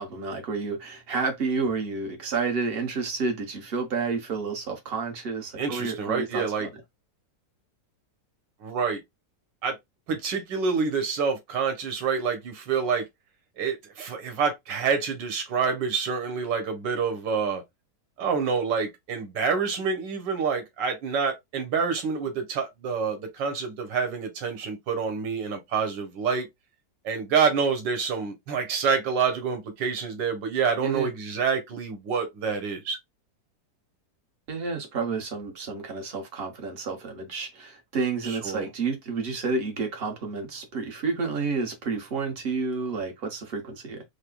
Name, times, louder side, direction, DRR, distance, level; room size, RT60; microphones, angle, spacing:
voice 1, 0.0-6.7 30.8-31.1 34.5-44.0, right 4 dB, 45° right, 0.9 m, -30 dB
voice 2, 5.6-6.7 8.6-9.0 9.6-9.8 10.1-13.0 13.6-17.6 18.2-26.5 27.0-33.0 38.2-38.7, right 5 dB, 85° right, 1.7 m, -27 dB
4.9 x 2.0 x 2.3 m
omnidirectional pair, 1.9 m